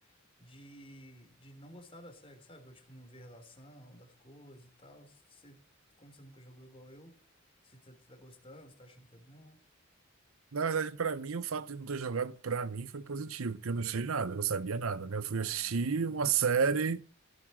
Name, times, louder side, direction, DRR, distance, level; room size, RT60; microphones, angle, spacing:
voice 1, 0.0-5.6 6.0-7.3 7.6-9.6 15.3-16.4, equal, 25° left, 3.3 m, -54 dB
voice 2, 10.5-17.0, right 5 dB, 80° right, 0.7 m, -32 dB
16.5 x 7.6 x 7.6 m
head